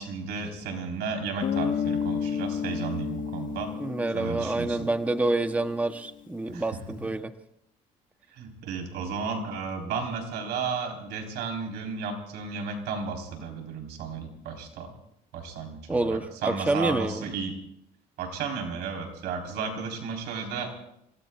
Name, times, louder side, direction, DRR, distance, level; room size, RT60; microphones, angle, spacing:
voice 1, 0.0-3.7 4.1-4.9 6.5-6.6 8.3-14.9 15.3-17.6 18.2-20.7, right 5 dB, 80° right, 2 dB, 4.1 m, -33 dB
Guitar, 1.4-6.0, left 7 dB, 55° left, 1.2 m, -32 dB
voice 2, 3.8-7.3 15.9-17.3, right 2 dB, 10° right, 8 dB, 0.8 m, -28 dB
30.0 x 17.5 x 2.4 m, 0.81 s
cardioid pair, 110°, 17 cm